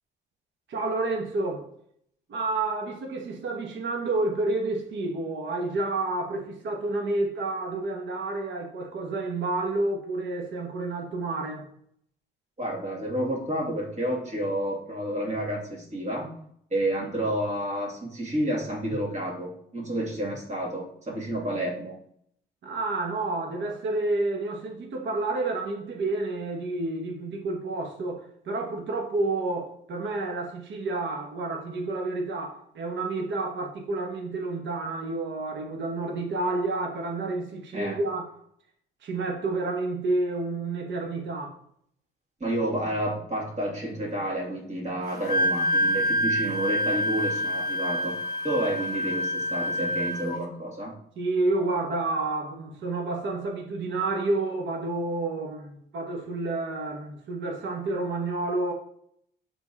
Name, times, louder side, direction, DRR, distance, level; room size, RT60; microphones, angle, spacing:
voice 1, 0.7-1.7 2.3-11.7 22.6-38.2 39.0-41.6 51.2-58.7, right 2 dB, 70° right, 1.2 m, -29 dB
voice 2, 12.6-16.3 16.7-22.0 37.7-38.0 42.4-50.9, right 1 dB, 35° right, 2.5 m, -30 dB
Wind instrument woodwind instrument, 45.1-50.4, equal, 20° left, 2.0 m, -27 dB
7.2 x 3.8 x 4.1 m
cardioid pair, 90°, 20 cm